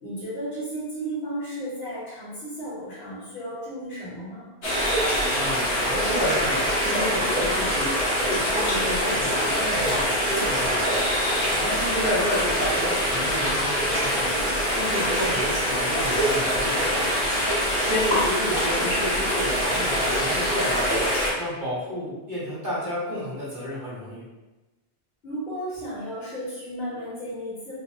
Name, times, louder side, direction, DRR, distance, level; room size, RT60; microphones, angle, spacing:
voice 1, 0.0-4.5 25.2-27.8, right 1 dB, 70° left, -7 dB, 1.3 m, -34 dB
sound 1, 4.6-21.3, equal, 85° left, 1.2 m, -24 dB
voice 2, 5.3-10.9 11.5-14.3 14.7-16.8 17.8-20.8 21.4-24.2, equal, 50° right, -10 dB, 1.3 m, -31 dB
3.2 x 2.2 x 2.7 m, 1.1 s
omnidirectional pair, 1.1 m